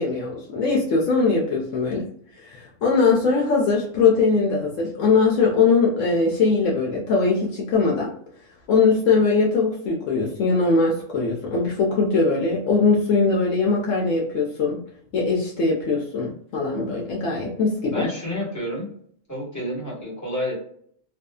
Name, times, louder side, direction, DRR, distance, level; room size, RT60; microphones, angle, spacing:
voice 1, 0.0-2.1 2.4-8.1 8.7-14.8 15.1-18.1, left 4 dB, 75° left, -2 dB, 1.0 m, -21 dB
voice 2, 17.9-18.9 19.3-20.5, equal, 15° left, -5 dB, 1.2 m, -29 dB
2.6 x 2.3 x 2.2 m, 0.63 s
omnidirectional pair, 1.4 m